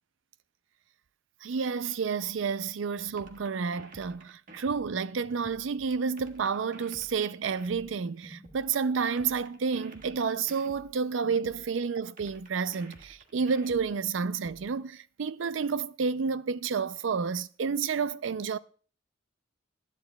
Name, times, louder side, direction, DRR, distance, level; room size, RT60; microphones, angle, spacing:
voice 1, 1.4-18.6, right 5 dB, 75° right, 0.5 m, -30 dB
sound 1, 3.2-5.7 6.2-8.7 9.2-11.7 12.2-14.7, right 1 dB, 45° right, 1.5 m, -51 dB
20.0 x 11.0 x 2.3 m
head